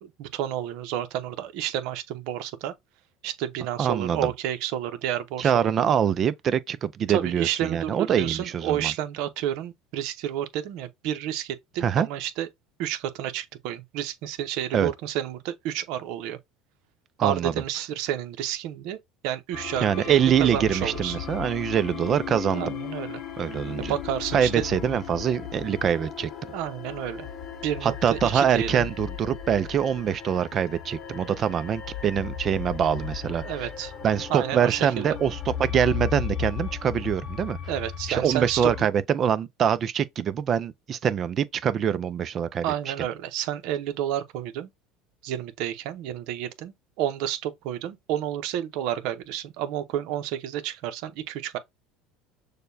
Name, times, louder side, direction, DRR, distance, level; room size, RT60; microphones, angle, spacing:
voice 1, 0.0-2.7 3.2-5.9 7.1-12.5 12.8-16.4 17.2-19.0 19.2-21.2 22.5-23.2 23.9-24.7 26.5-27.3 27.6-28.9 33.4-33.9 34.3-35.1 37.7-38.7 42.6-44.7 45.2-51.6, right 11 dB, 70° right, 0.8 m, -30 dB
voice 2, 3.8-4.3 5.4-8.9 11.8-12.1 14.7-14.9 17.2-17.5 19.8-22.7 23.4-23.9 24.3-26.3 27.8-33.4 34.0-37.6 38.1-43.1, right 8 dB, 35° right, 0.5 m, -24 dB
sound 1, 19.5-38.8, left 8 dB, 40° left, 0.8 m, -36 dB
6.6 x 2.2 x 2.7 m
supercardioid pair, 125°, 0 cm